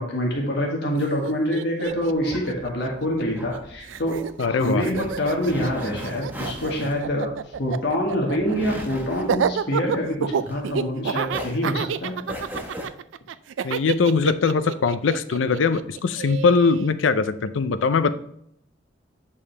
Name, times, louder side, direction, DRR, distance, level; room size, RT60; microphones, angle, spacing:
voice 1, 0.0-7.3 7.6-12.2, equal, 60° left, -1 dB, 1.5 m, -26 dB
Laughter, 0.9-1.0 1.2-3.6 3.9-16.9, right 7 dB, 85° right, 0.3 m, -29 dB
sound 1, 1.9-11.0 11.3-12.9, equal, 10° right, 1.1 m, -37 dB
voice 2, 4.4-4.8 13.6-18.1, left 4 dB, 90° left, 13 dB, 0.5 m, -21 dB
8.4 x 5.3 x 3.3 m, 0.71 s
head